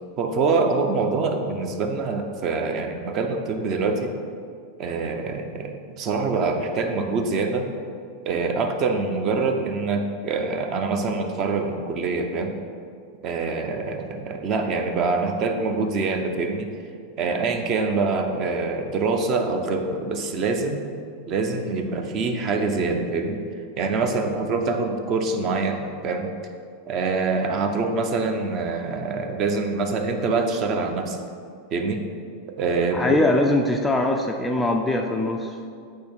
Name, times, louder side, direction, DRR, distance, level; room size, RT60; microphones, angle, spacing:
voice 1, 0.2-4.1 4.8-7.7 8.3-12.5 13.2-16.7 17.2-20.8 21.3-23.4 23.8-26.3 26.9-31.2 31.7-32.0 32.6-33.2, right 4 dB, 35° right, 4 dB, 0.7 m, -25 dB
voice 2, 32.9-35.5, left 1 dB, 10° left, 2 dB, 0.4 m, -22 dB
8.4 x 3.2 x 6.1 m, 2.3 s
supercardioid pair, 155°, 0 cm